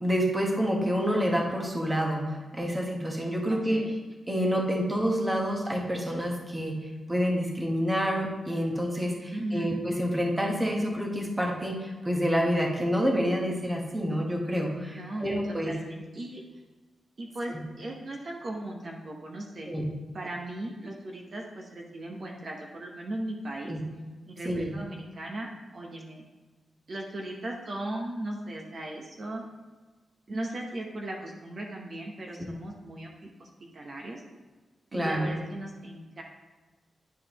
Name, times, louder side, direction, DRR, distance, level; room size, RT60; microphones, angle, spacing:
voice 1, 0.0-3.9 4.3-15.7 17.5-17.6 19.7-19.9 23.7-23.8 24.4-24.7 32.4-32.5 34.9-35.3, equal, 15° right, 0 dB, 1.2 m, -28 dB
voice 2, 3.5-3.9 9.3-9.8 14.9-16.4 17.2-19.8 20.1-23.8 24.3-26.2 26.9-29.4 30.3-34.2 34.9-36.2, right 1 dB, 45° right, 0 dB, 0.9 m, -37 dB
10.5 x 4.9 x 3.0 m, 1.3 s
wide cardioid pair, 105°, 0 cm